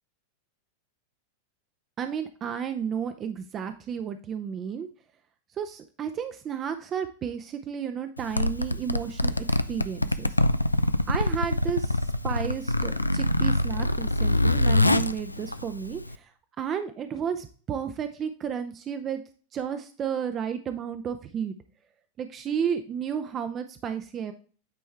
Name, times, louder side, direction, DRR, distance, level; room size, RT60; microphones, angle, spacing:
voice 1, 2.0-4.9 5.6-10.3 11.1-16.3 16.6-19.2 19.5-21.5 22.2-24.3, right 7 dB, 25° right, 8 dB, 0.6 m, -32 dB
Zipper (clothing), 8.2-16.1, left 1 dB, 85° left, 0.3 m, -25 dB
9.3 x 4.4 x 3.3 m, 0.40 s
figure-of-eight pair, 90°, 0 cm